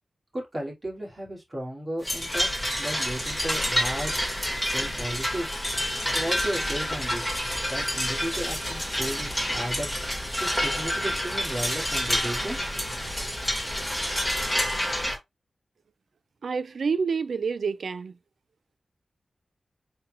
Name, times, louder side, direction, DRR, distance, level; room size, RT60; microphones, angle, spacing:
voice 1, 0.3-2.5 2.8-4.2 4.7-5.6 6.1-7.3 7.7-9.9 10.4-12.6, right 1 dB, 35° right, 2.5 m, -34 dB
sound 1, 2.0-15.1, equal, ahead, 2.1 m, -28 dB
voice 2, 16.4-18.2, right 5 dB, 80° right, 0.3 m, -28 dB
4.4 x 3.7 x 2.4 m
cardioid pair, 65°, 0 cm